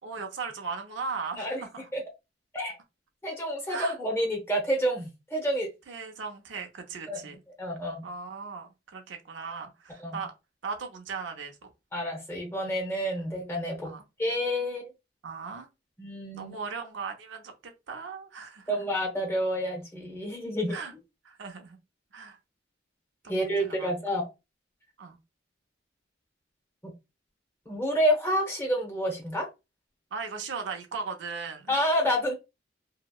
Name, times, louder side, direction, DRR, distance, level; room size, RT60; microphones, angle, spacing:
voice 1, 0.0-1.9 3.7-4.0 5.9-7.4 8.0-10.3 10.6-11.5 13.8-14.0 15.2-15.7 16.3-17.5 17.9-18.8 20.7-20.9 21.2-21.8 22.1-22.4 23.2-23.9 25.0-25.2 30.1-31.8, right 5 dB, 70° right, 0.5 m, -37 dB
voice 2, 3.2-5.7 7.1-7.2 7.6-8.0 10.0-10.2 11.9-13.9 14.2-14.9 16.0-16.6 18.7-20.8 23.3-24.3 26.8-26.9 27.7-29.5 31.7-32.3, equal, 15° left, 0.8 m, -29 dB
2.7 x 2.0 x 2.2 m
head